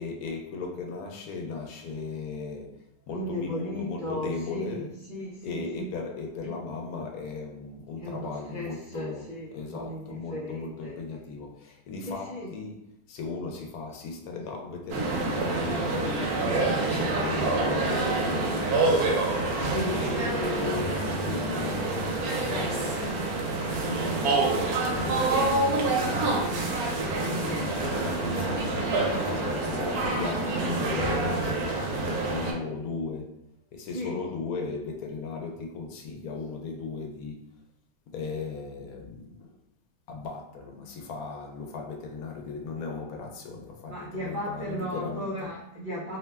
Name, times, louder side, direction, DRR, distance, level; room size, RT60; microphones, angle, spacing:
voice 1, 0.0-4.9 5.4-9.3 9.5-12.8 13.1-28.8 29.1-33.4 33.7-37.5 38.1-39.5 40.1-45.5, left 4 dB, 80° left, 1.1 m, -37 dB
voice 2, 3.1-4.8 5.1-5.9 8.0-11.0 12.1-12.5 19.6-20.0 27.4-27.6 29.1-29.3 33.9-34.2 43.9-46.2, equal, 65° right, 0.5 m, -36 dB
sound 1, 14.9-32.5, right 2 dB, 90° right, 1.1 m, -27 dB
2.8 x 2.1 x 3.3 m
omnidirectional pair, 1.5 m